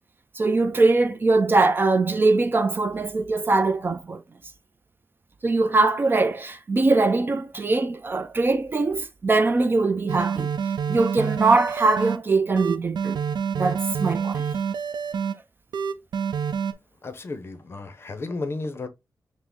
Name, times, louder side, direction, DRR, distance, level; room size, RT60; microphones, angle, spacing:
voice 1, 0.4-4.2 5.4-10.5 10.9-13.2 13.5-14.5, right 3 dB, 30° right, 0.3 m, -22 dB
sound 1, 10.1-12.2 12.6-15.3 15.7-16.7, right 7 dB, 90° right, 0.5 m, -27 dB
voice 2, 17.0-18.9, left 3 dB, 35° left, 0.6 m, -33 dB
5.8 x 2.0 x 3.5 m
wide cardioid pair, 175°, 7 cm